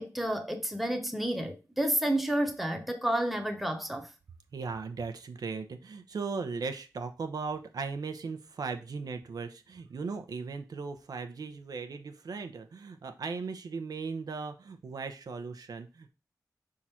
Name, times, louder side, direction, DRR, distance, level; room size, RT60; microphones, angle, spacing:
voice 1, 0.0-4.1, right 1 dB, ahead, 1.1 m, -30 dB
voice 2, 4.5-16.1, right 4 dB, 70° right, 0.8 m, -37 dB
6.0 x 3.8 x 4.3 m
wide cardioid pair, 150°, 7 cm